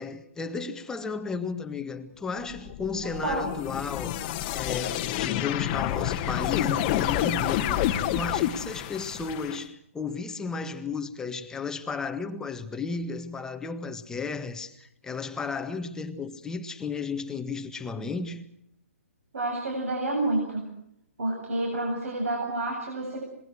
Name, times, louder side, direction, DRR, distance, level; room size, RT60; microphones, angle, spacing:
voice 1, 0.0-4.2 4.5-18.4, left 4 dB, 10° left, 1.7 m, -34 dB
sound 1, 2.5-9.6, left 12 dB, 30° left, 1.7 m, -29 dB
voice 2, 3.0-3.4 19.3-20.6 21.2-23.3, right 2 dB, 70° right, 7.7 m, -29 dB
26.5 x 21.5 x 6.3 m
hypercardioid pair, 140°, 8 cm